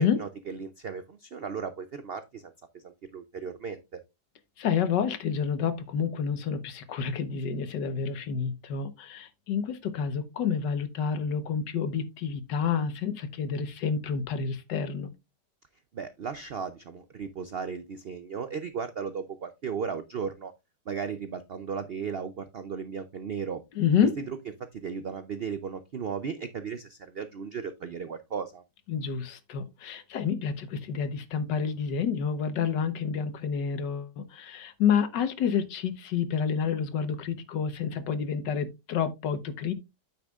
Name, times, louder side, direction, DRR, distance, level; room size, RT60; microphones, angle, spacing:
voice 1, 0.0-4.0 15.9-20.5 20.9-23.6 24.6-28.6, right 6 dB, 70° right, 0.5 m, -36 dB
voice 2, 4.6-15.1 23.7-24.1 28.9-39.7, left 7 dB, 85° left, 1.7 m, -29 dB
9.0 x 8.3 x 2.4 m
omnidirectional pair, 1.8 m